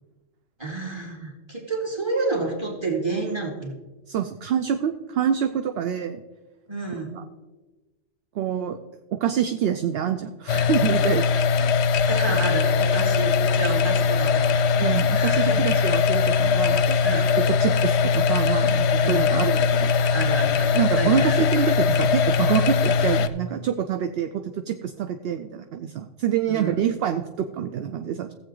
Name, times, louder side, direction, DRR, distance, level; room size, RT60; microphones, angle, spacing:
voice 1, 0.6-3.7 6.7-7.2 12.0-15.9 17.0-17.2 19.0-19.3 20.1-21.4 26.5-26.7, right 3 dB, 20° right, 0 dB, 2.4 m, -30 dB
voice 2, 4.1-6.2 7.1-7.2 8.3-8.8 9.1-11.7 14.8-17.0 17.4-19.9 20.7-28.3, right 9 dB, 65° right, 8 dB, 0.7 m, -26 dB
sound 1, 10.5-23.3, left 5 dB, 65° left, 0.8 m, -21 dB
15.5 x 7.9 x 3.9 m, 1.2 s
omnidirectional pair, 1.3 m